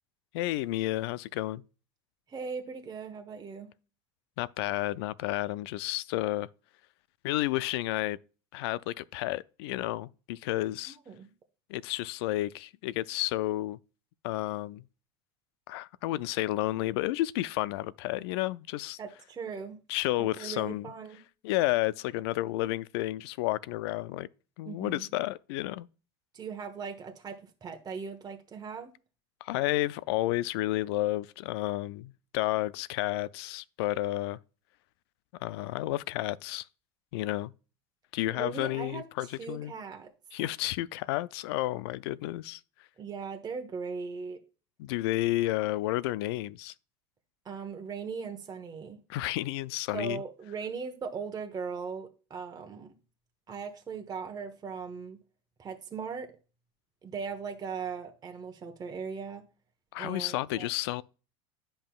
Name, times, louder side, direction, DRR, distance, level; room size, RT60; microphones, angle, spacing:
voice 1, 0.3-1.6 4.4-6.5 7.2-8.2 8.5-11.0 11.7-13.8 14.2-14.8 15.7-19.0 19.9-20.9 21.4-24.3 24.6-25.9 29.4-34.4 35.4-36.7 37.1-37.5 38.1-39.7 40.3-42.6 44.8-46.7 49.1-50.2 59.9-61.0, left 16 dB, 75° left, 0.4 m, -31 dB
voice 2, 2.3-3.7 11.1-11.3 19.0-19.8 20.2-21.2 24.7-25.1 26.3-28.9 38.3-39.1 39.4-40.1 43.0-44.4 47.4-49.0 49.9-52.9 53.5-55.2 55.6-56.3 57.0-59.4 60.0-60.7, right 5 dB, 30° right, 1.1 m, -39 dB
10.0 x 5.5 x 2.3 m
hypercardioid pair, 90°, 14 cm